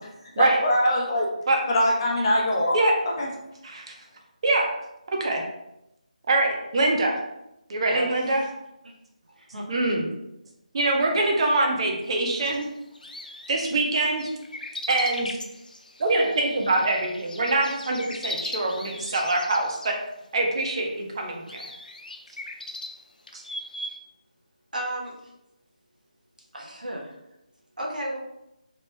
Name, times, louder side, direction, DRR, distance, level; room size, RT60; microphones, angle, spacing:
voice 1, 0.4-1.3 1.7-2.7 3.2-3.3, left 1 dB, 35° left, -3 dB, 0.6 m, -22 dB
voice 2, 6.3-7.2 7.7-8.4 9.7-10.1 10.7-12.7 13.5-14.3 14.9-15.3 16.0-19.9 20.3-21.6 23.3-23.4, right 2 dB, 40° right, 1 dB, 0.6 m, -24 dB
voice 3, 9.3-9.7 24.7-25.1 26.5-27.2 27.8-28.2, right 1 dB, 80° right, -1 dB, 0.8 m, -33 dB
sound 1, 12.1-19.9 20.7-20.8 21.5-24.0, left 1 dB, 90° left, 0.4 m, -39 dB
3.1 x 2.1 x 3.1 m, 0.87 s
figure-of-eight pair, 160°, 4 cm